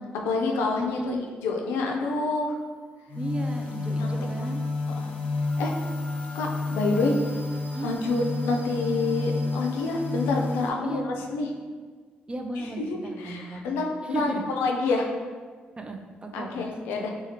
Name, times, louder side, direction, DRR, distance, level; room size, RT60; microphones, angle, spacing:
voice 1, 0.2-1.2 1.4-2.6 4.0-4.5 5.0-5.1 5.6-5.7 6.3-7.4 7.8-11.5 12.6-15.1 16.3-17.1, left 3 dB, 90° left, 1 dB, 0.3 m, -28 dB
voice 2, 1.0-1.3 3.1-4.6 7.7-7.9 10.8-11.0 12.3-13.7 14.1-14.4 15.8-16.6 17.0-17.1, right 2 dB, 25° right, 4 dB, 0.3 m, -35 dB
sound 1, 3.1-10.7, left 3 dB, 40° left, 0.6 m, -30 dB
2.8 x 2.3 x 2.9 m, 1.5 s
supercardioid pair, 65°, 4 cm